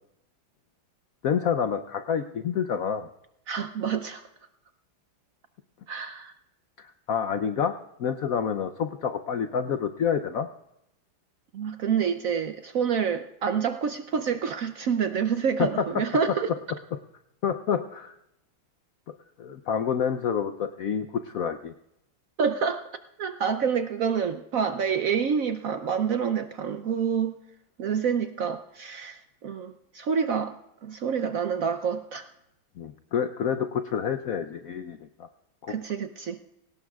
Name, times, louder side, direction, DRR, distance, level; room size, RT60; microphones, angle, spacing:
voice 1, 1.2-3.1 6.8-10.5 15.6-15.7 17.4-18.1 19.4-21.7 32.8-35.3 35.6-35.7, left 7 dB, 75° left, 9 dB, 0.7 m, -28 dB
voice 2, 3.5-4.3 5.9-6.3 11.5-16.5 22.4-22.9 23.2-27.4 27.8-32.3 35.7-36.4, right 6 dB, 80° right, 9 dB, 0.7 m, -27 dB
23.5 x 18.5 x 2.4 m, 0.84 s
omnidirectional pair, 2.2 m